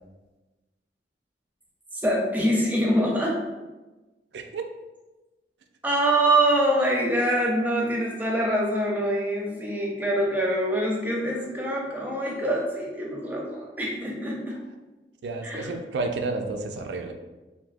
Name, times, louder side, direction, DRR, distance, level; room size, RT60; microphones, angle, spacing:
voice 1, 1.9-3.4 5.8-14.6 15.4-15.7, right 1 dB, 10° right, -2 dB, 0.6 m, -25 dB
voice 2, 4.3-4.7 15.2-17.1, right 3 dB, 75° right, 5 dB, 0.4 m, -31 dB
3.4 x 2.5 x 2.5 m, 1.1 s
head